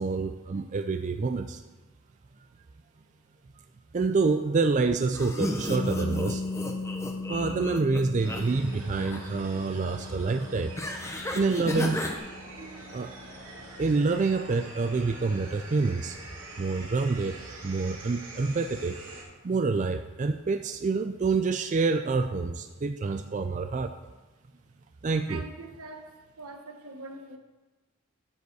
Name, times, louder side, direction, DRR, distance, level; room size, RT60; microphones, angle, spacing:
voice 1, 0.0-1.6 3.9-6.4 7.2-10.7 11.3-12.0 12.6-13.1 13.8-16.2 16.6-19.0 19.4-23.9 25.0-25.4, right 4 dB, 35° right, 8 dB, 0.3 m, -27 dB
sound 1, 5.1-8.4 8.7-9.3 10.8-12.2, left 1 dB, 15° left, 0.8 m, -34 dB
sound 2, 5.7-17.5, left 3 dB, 75° left, 1.2 m, -39 dB
sound 3, 8.2-19.2, right 2 dB, 65° right, 3.1 m, -45 dB
voice 2, 25.3-27.4, right 3 dB, 85° right, 5 dB, 1.2 m, -43 dB
10.5 x 5.2 x 6.8 m, 1.2 s
head